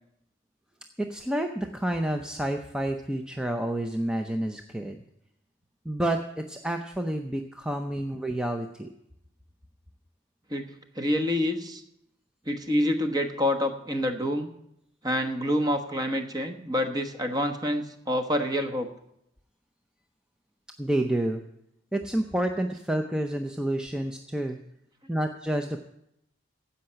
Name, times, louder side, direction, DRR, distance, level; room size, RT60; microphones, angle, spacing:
voice 1, 1.0-5.0 5.8-8.9 20.8-21.4 21.9-24.6 25.1-25.8, right 1 dB, 5° right, 5 dB, 0.6 m, -29 dB
voice 2, 10.9-11.8 12.5-14.5 15.0-18.9, left 1 dB, 20° right, 6 dB, 1.1 m, -27 dB
15.5 x 5.7 x 8.6 m, 0.79 s
head